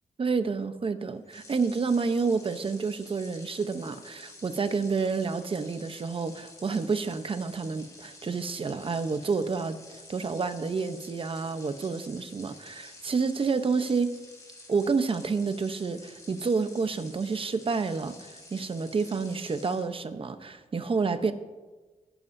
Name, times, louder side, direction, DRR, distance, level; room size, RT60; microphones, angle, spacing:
voice 1, 0.2-14.1 14.7-21.3, right 4 dB, 40° right, 10 dB, 0.8 m, -29 dB
sound 1, 1.2-19.9, left 2 dB, 25° left, 3.0 m, -50 dB
20.5 x 11.0 x 2.7 m, 1.3 s
wide cardioid pair, 110°, 14 cm